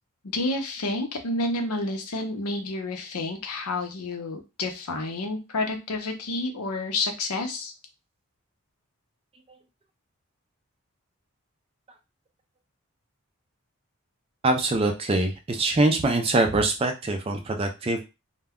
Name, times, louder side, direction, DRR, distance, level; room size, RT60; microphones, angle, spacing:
voice 1, 0.3-7.7, left 2 dB, 85° left, 4 dB, 0.7 m, -29 dB
voice 2, 14.4-18.0, right 2 dB, 25° right, 5 dB, 0.3 m, -23 dB
2.2 x 2.1 x 3.5 m, 0.27 s
head